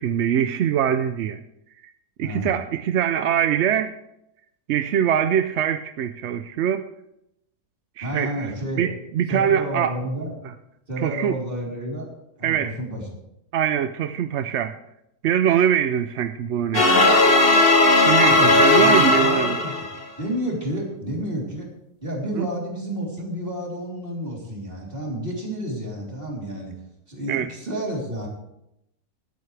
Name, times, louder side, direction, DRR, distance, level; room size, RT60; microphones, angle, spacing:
voice 1, 0.0-1.4 2.2-3.9 4.7-6.9 8.0-9.9 11.0-11.4 12.4-12.8 13.5-14.8 15.2-17.0 18.1-19.6 22.4-22.5 27.3-27.5, right 9 dB, 65° right, 10 dB, 0.7 m, -23 dB
voice 2, 2.2-2.6 8.0-8.8 9.3-10.3 10.9-12.1 12.4-13.0 18.3-19.9 20.2-21.7 22.0-26.7 27.1-28.3, equal, 35° right, -2 dB, 3.6 m, -30 dB
sound 1, 16.7-20.0, left 2 dB, 40° left, 1.6 m, -16 dB
20.0 x 9.4 x 3.3 m, 0.81 s
omnidirectional pair, 1.6 m